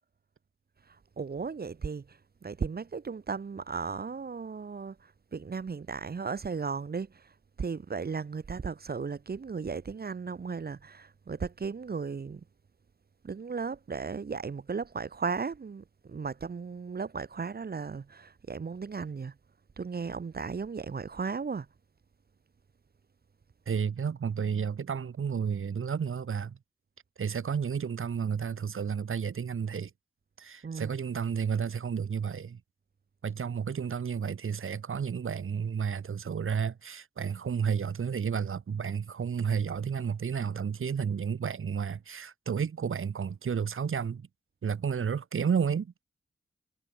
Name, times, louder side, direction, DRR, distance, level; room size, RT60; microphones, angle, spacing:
voice 1, 0.9-12.4 13.2-19.3 19.8-21.7 30.6-31.0, right 5 dB, 50° right, 0.9 m, -36 dB
voice 2, 23.7-26.6 27.2-29.9 30.4-32.6 33.2-44.3 44.6-46.0, right 7 dB, 80° right, 1.7 m, -31 dB
wide cardioid pair, 75°, 21 cm